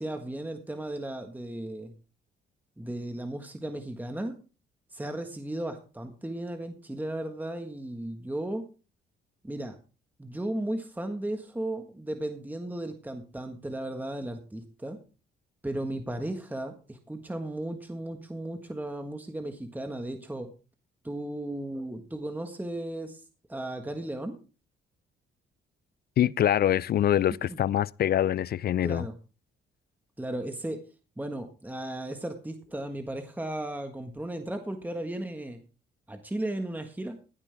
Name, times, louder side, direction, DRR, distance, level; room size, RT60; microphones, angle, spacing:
voice 1, 0.0-1.9 2.8-4.4 4.9-8.6 9.4-9.8 10.2-15.0 15.6-20.5 21.0-23.2 23.5-24.4 27.5-27.6 28.8-29.1 30.2-30.8 31.2-35.6 36.1-37.2, right 1 dB, 10° right, 1.6 m, -35 dB
voice 2, 26.2-29.1, left 11 dB, 50° left, 0.5 m, -24 dB
16.5 x 9.8 x 3.5 m
cardioid pair, 90°, 20 cm